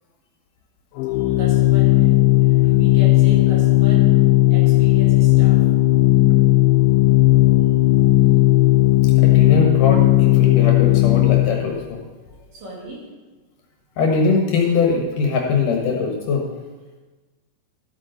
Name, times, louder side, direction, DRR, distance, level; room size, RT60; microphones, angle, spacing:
Organ, 1.0-11.7, left 16 dB, 85° left, 2.5 m, -15 dB
voice 1, 1.4-4.2 4.5-5.7 12.5-13.1, right 1 dB, 60° right, -3 dB, 3.9 m, -36 dB
voice 2, 9.2-12.0 14.0-16.4, left 4 dB, 65° left, 0 dB, 2.5 m, -21 dB
13.5 x 8.4 x 3.9 m, 1.2 s
omnidirectional pair, 4.5 m